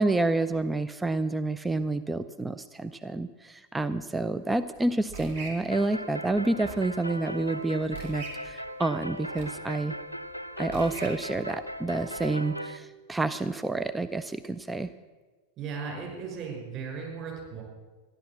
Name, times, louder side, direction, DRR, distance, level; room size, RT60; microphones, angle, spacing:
voice 1, 0.0-9.9 10.6-14.9, right 2 dB, 10° right, 12 dB, 0.5 m, -29 dB
sound 1, 4.3-12.3, right 3 dB, 70° right, 3.8 m, -46 dB
sound 2, 5.7-12.8, equal, 90° left, 0.6 m, -38 dB
voice 2, 15.6-17.6, right 5 dB, 35° right, 0 dB, 5.7 m, -36 dB
13.5 x 11.0 x 7.3 m, 1.3 s
figure-of-eight pair, 90°, 0 cm